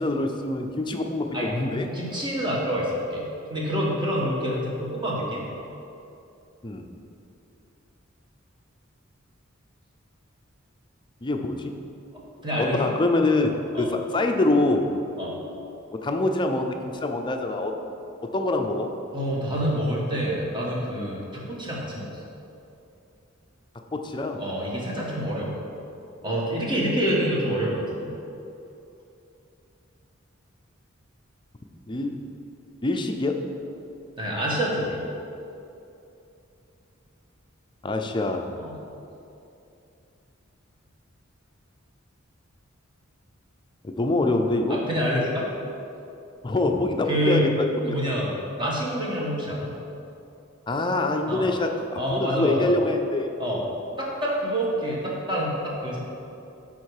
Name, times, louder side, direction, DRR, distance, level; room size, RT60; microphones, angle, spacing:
voice 1, 0.0-1.9 6.6-6.9 11.2-11.7 12.6-14.9 16.0-17.7 18.2-18.9 23.9-24.4 31.9-32.2 32.8-33.4 37.8-38.5 43.8-44.8 46.4-48.0 50.7-53.3, left 2 dB, 25° left, 4 dB, 0.5 m, -25 dB
voice 2, 1.9-5.5 12.4-12.9 13.7-13.9 15.2-15.4 19.1-22.2 24.4-25.6 26.2-28.1 34.2-35.0 38.6-38.8 44.7-45.5 47.1-47.5 47.9-49.7 51.3-51.5 52.0-52.7 53.4-53.6 54.0-56.0, equal, 25° right, -4 dB, 1.3 m, -27 dB
9.7 x 3.7 x 4.8 m, 2.8 s
head